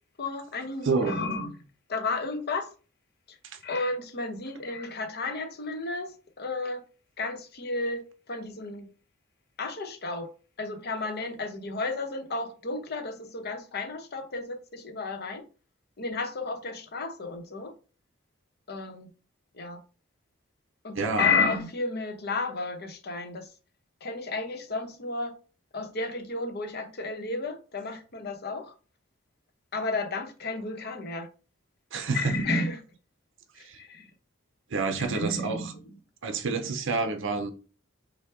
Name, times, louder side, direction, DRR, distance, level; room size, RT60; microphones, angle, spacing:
voice 1, 0.2-1.6 1.9-2.7 3.3-3.4 3.6-6.8 7.2-8.9 9.6-10.3 10.6-15.4 16.0-17.7 18.7-19.1 19.6-19.8 20.8-23.5 24.0-25.3 25.7-28.7 29.7-31.3 32.1-32.8 33.6-34.1 35.0-35.8 36.5-36.7, left 3 dB, 55° left, 0.9 m, -32 dB
voice 2, 0.8-1.2 20.9-21.3 31.9-32.4 33.6-33.8 34.7-35.7 36.2-37.5, right 4 dB, 65° right, 0.6 m, -28 dB
5.5 x 2.2 x 3.6 m
head